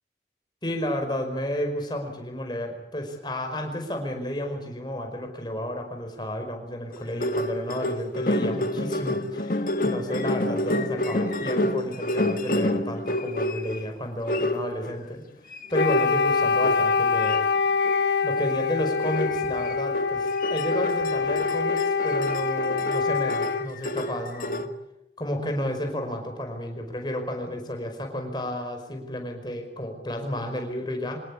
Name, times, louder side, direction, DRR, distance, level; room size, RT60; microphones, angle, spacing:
voice 1, 0.6-15.2 15.7-17.4 18.2-24.7 25.2-31.2, equal, 25° left, 4 dB, 5.2 m, -32 dB
sound 1, 6.9-13.8 14.3-15.0 15.5-17.4 17.8-18.1 18.4-18.6 19.0-24.7, left 1 dB, 50° left, 1.5 m, -28 dB
Wind instrument woodwind instrument, 15.7-23.7, left 5 dB, 75° left, 0.8 m, -25 dB
26.0 x 19.0 x 8.6 m, 0.82 s
head